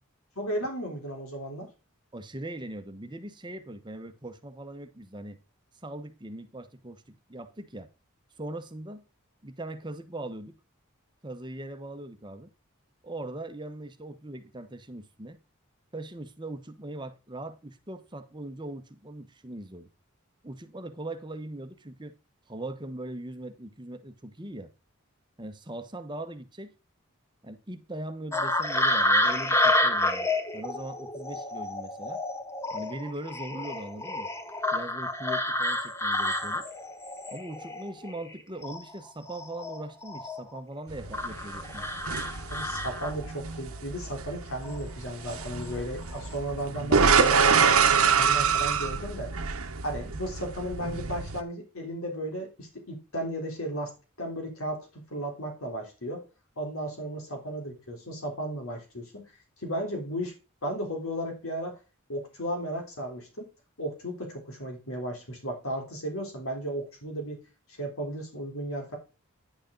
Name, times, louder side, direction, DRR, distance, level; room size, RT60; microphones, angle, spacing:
voice 1, 0.4-1.7 42.5-49.3 49.8-53.9 54.2-56.2 56.6-59.2 59.6-60.4 60.6-61.8 62.1-63.5 63.8-67.4 67.7-69.0, right 1 dB, 80° left, 3.6 m, -35 dB
voice 2, 2.1-5.4 5.8-7.9 8.4-9.0 9.4-10.6 11.2-12.5 13.0-15.4 15.9-19.9 20.4-22.2 22.5-24.7 25.4-26.7 27.4-32.2 32.7-34.3 34.7-36.7 37.3-42.0, right 1 dB, 20° right, 1.0 m, -40 dB
sound 1, 28.3-38.3 38.6-40.6 41.1-43.4 44.6-44.8 45.3-45.7 46.0-46.3, left 1 dB, 10° left, 1.0 m, -29 dB
sound 2, 40.9-51.4, right 6 dB, 85° right, 1.0 m, -26 dB
10.0 x 6.5 x 3.9 m
head